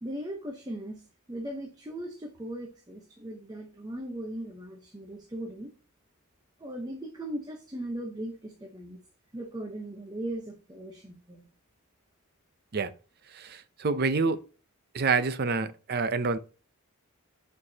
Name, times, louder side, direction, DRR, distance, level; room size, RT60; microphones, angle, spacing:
voice 1, 0.0-1.0 1.3-5.7 6.6-9.0 9.3-11.5, right 1 dB, 20° right, 0.9 m, -38 dB
voice 2, 13.3-14.4 14.9-16.4, right 4 dB, 45° right, 0.6 m, -27 dB
11.0 x 4.7 x 2.8 m
head